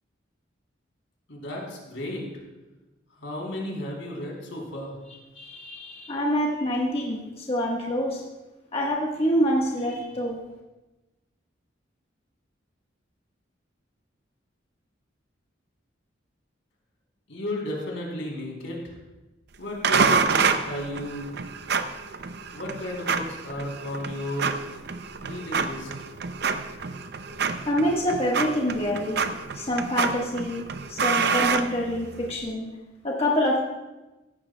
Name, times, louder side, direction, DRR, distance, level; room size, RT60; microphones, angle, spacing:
voice 1, 1.3-2.3 3.2-5.0 17.3-19.0 19.6-21.2 22.5-24.5 25.2-25.9, left 1 dB, 80° left, -1 dB, 3.2 m, -33 dB
voice 2, 5.3-8.2 8.7-10.4 27.7-29.2 29.5-32.7 33.0-33.6, equal, 30° left, -2 dB, 1.3 m, -26 dB
sound 1, 19.8-32.3, right 5 dB, 60° right, 0.6 m, -28 dB
15.0 x 12.0 x 2.2 m, 1.1 s
head